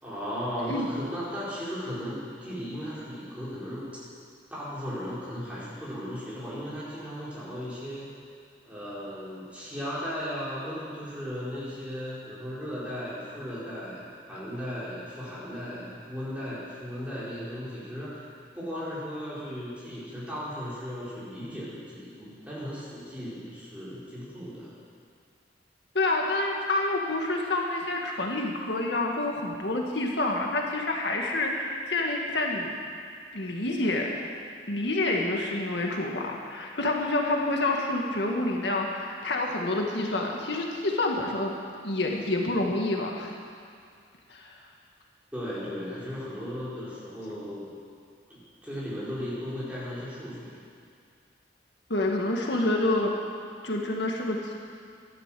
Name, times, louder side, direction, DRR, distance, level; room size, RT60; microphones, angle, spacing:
voice 1, 0.0-3.9 4.5-8.1 8.6-24.7 45.3-47.8 48.3-50.6, equal, 5° right, -9 dB, 4.7 m, -36 dB
voice 2, 25.9-32.7 33.3-34.1 34.7-41.6 41.8-43.4 44.3-44.5 51.9-53.1 53.6-54.5, left 2 dB, 75° left, 0 dB, 1.6 m, -28 dB
13.0 x 12.0 x 7.6 m, 2.3 s
head